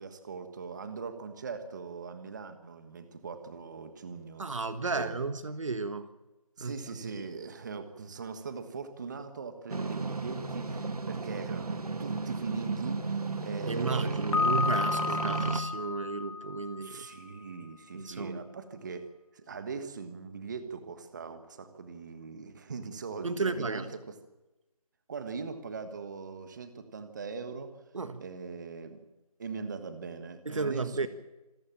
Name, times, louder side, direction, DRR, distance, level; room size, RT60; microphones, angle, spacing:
voice 1, 0.0-5.2 6.6-14.5 16.8-24.0 25.1-27.8 28.2-29.0 29.4-31.1, right 5 dB, 30° right, 9 dB, 1.5 m, -41 dB
voice 2, 4.4-6.1 6.6-7.0 13.7-17.1 17.9-18.4 23.2-23.9 27.9-28.2 30.4-31.1, right 4 dB, 55° right, 11 dB, 1.5 m, -33 dB
sound 1, 9.7-15.6, right 3 dB, 75° right, 1.8 m, -34 dB
Piano, 14.3-17.2, left 4 dB, 55° left, 1.1 m, -32 dB
27.0 x 14.0 x 7.5 m, 1.0 s
figure-of-eight pair, 165°, 19 cm